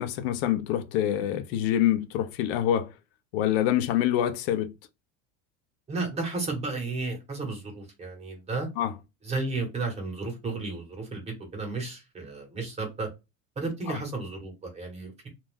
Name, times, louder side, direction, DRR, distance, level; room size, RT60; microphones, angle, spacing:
voice 1, 0.0-2.9 3.3-4.7 8.8-9.0 13.9-14.0, left 11 dB, 85° left, 0.6 m, -26 dB
voice 2, 5.9-8.7 9.3-13.1 13.6-15.3, right 3 dB, 20° right, 1.1 m, -33 dB
2.5 x 2.3 x 3.4 m
cardioid pair, 160°, 30 cm